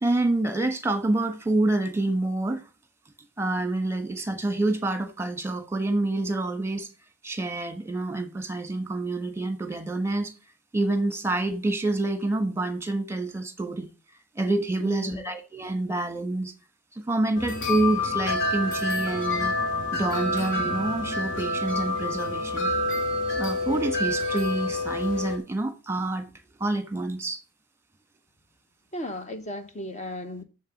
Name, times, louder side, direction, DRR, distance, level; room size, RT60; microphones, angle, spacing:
voice 1, 0.0-2.6 3.4-6.9 7.2-10.3 10.7-13.9 14.3-16.5 16.9-19.5 19.9-22.7 23.3-26.3 26.6-27.4, right 2 dB, 10° right, 1.5 m, -27 dB
voice 2, 14.8-15.2 28.9-30.4, left 1 dB, 30° left, 0.9 m, -36 dB
sound 1, 17.3-25.4, left 2 dB, 55° left, 2.6 m, -28 dB
7.2 x 6.8 x 7.2 m
head